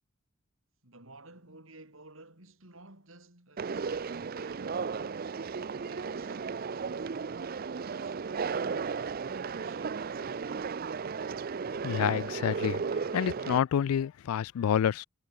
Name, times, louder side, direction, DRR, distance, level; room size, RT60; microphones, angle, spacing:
voice 1, 0.8-4.9 5.8-7.2 7.6-8.8 9.3-10.8, right 2 dB, 65° right, 5.1 m, -54 dB
Conversation, 3.6-13.6, right 5 dB, 45° right, 0.4 m, -35 dB
voice 2, 11.8-12.8 13.1-15.0, left 8 dB, 80° left, 0.3 m, -28 dB
head